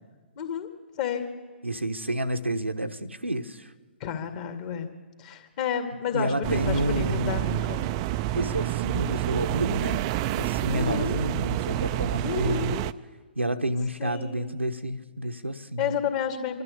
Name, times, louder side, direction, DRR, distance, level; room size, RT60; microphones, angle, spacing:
voice 1, 0.4-0.7 1.0-1.3 4.0-4.9 5.2-7.8 10.7-11.2 12.2-12.8 14.0-14.5 15.8-16.6, left 8 dB, 35° left, 6 dB, 2.3 m, -31 dB
voice 2, 1.6-3.7 6.1-7.7 8.3-10.1 10.3-12.7 13.4-16.0, right 1 dB, 85° right, 7 dB, 1.1 m, -30 dB
sound 1, 6.4-12.9, right 14 dB, 30° right, 0.5 m, -28 dB
25.0 x 12.5 x 8.5 m, 1.4 s
figure-of-eight pair, 125°, 6 cm